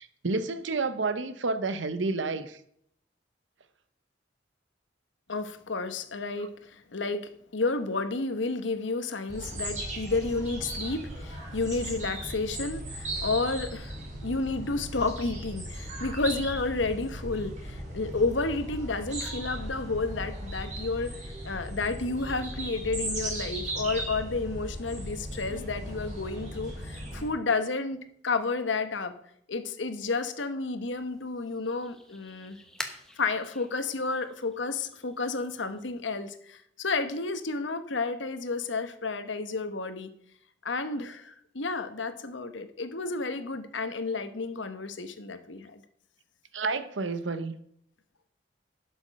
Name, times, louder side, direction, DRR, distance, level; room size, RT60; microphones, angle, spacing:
voice 1, 0.0-2.6 46.5-47.5, right 3 dB, 90° right, 0.9 m, -30 dB
voice 2, 5.3-14.0 14.2-21.2 21.4-28.0 28.2-29.1 29.5-32.6 33.2-40.1 40.6-45.8, left 3 dB, 90° left, 1.1 m, -31 dB
sound 1, 9.3-27.3, right 1 dB, 40° right, 4.5 m, -37 dB
sound 2, 30.8-36.1, left 1 dB, 5° left, 1.1 m, -46 dB
12.0 x 7.0 x 5.4 m
head